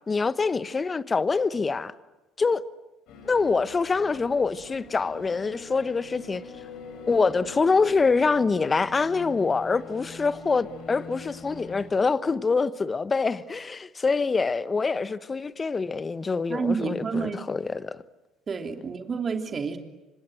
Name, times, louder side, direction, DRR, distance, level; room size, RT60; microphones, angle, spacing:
voice 1, 0.1-1.9 2.4-2.6 3.3-6.4 7.1-18.0, left 4 dB, 30° left, 1.2 m, -25 dB
sound 1, 3.1-11.9, left 3 dB, 65° left, 6.8 m, -44 dB
voice 2, 16.5-17.4 18.5-19.8, right 5 dB, 35° right, 3.1 m, -29 dB
29.0 x 26.0 x 7.8 m
hypercardioid pair, 60°, 0 cm